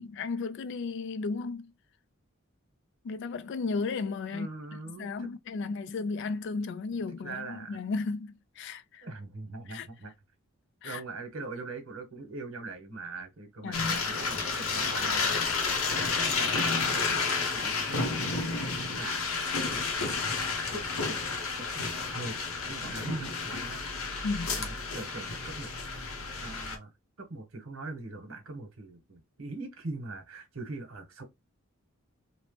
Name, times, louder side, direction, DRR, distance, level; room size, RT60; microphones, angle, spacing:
voice 1, 0.0-1.7 3.0-4.5 5.0-9.1 9.7-9.9 10.8-11.0 13.6-14.0 24.2-24.5, left 4 dB, 55° left, 0.3 m, -34 dB
voice 2, 4.3-5.7 6.9-7.8 9.0-10.1 10.8-18.4 18.9-19.3 20.7-21.2 21.5-23.8 24.5-25.7 26.4-26.9 27.2-31.2, right 3 dB, 75° right, 1.0 m, -42 dB
sound 1, 13.7-26.8, left 4 dB, 90° left, 0.7 m, -31 dB
2.9 x 2.1 x 3.1 m
head